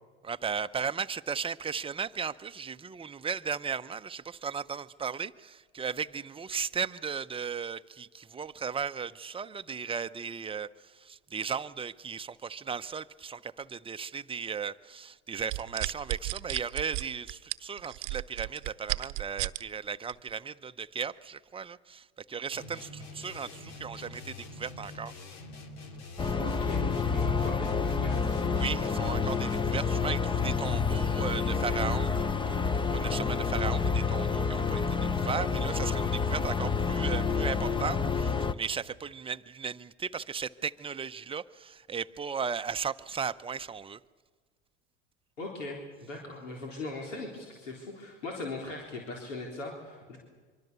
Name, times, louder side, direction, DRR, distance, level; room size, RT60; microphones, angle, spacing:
voice 1, 0.2-10.7 10.9-25.1 28.6-32.6 32.9-44.0, right 6 dB, 15° right, 10 dB, 0.7 m, -36 dB
sound 1, 15.4-19.6 20.1-20.3, right 23 dB, 55° right, 0.9 m, -33 dB
sound 2, 22.5-30.2, left 1 dB, 60° left, 3.2 m, -45 dB
sound 3, 26.2-38.5, left 5 dB, 15° left, 0.9 m, -28 dB
voice 2, 26.4-28.5 45.4-50.2, left 2 dB, 90° left, -1 dB, 3.9 m, -40 dB
25.0 x 24.5 x 6.9 m, 1.5 s
hypercardioid pair, 90°, 36 cm